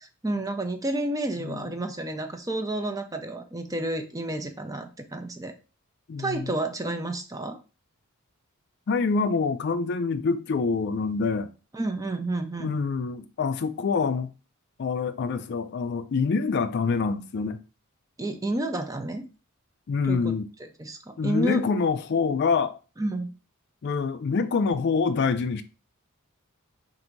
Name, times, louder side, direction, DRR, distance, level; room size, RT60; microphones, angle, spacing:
voice 1, 0.0-5.5 6.2-7.6 11.7-12.7 18.2-19.2 20.1-21.7 23.0-23.3, right 1 dB, 15° right, 0.5 m, -30 dB
voice 2, 1.4-1.7 6.1-6.5 8.9-11.5 12.6-14.3 14.8-17.6 19.9-20.5 21.2-22.8 23.8-25.6, left 4 dB, 50° left, 0.4 m, -26 dB
3.9 x 2.6 x 4.5 m
head